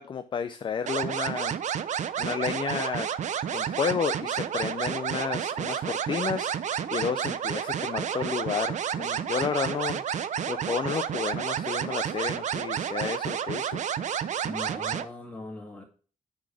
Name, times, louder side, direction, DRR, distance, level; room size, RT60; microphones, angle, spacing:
voice 1, 0.0-1.5 2.2-3.1 3.5-10.0 10.5-13.9, left 7 dB, 35° left, 10 dB, 0.4 m, -31 dB
sound 1, 0.9-15.0, right 8 dB, 55° right, 0.5 m, -30 dB
voice 2, 14.4-15.8, left 2 dB, 10° left, 0 dB, 1.9 m, -40 dB
8.6 x 3.9 x 6.0 m, 0.40 s
wide cardioid pair, 170°, 14 cm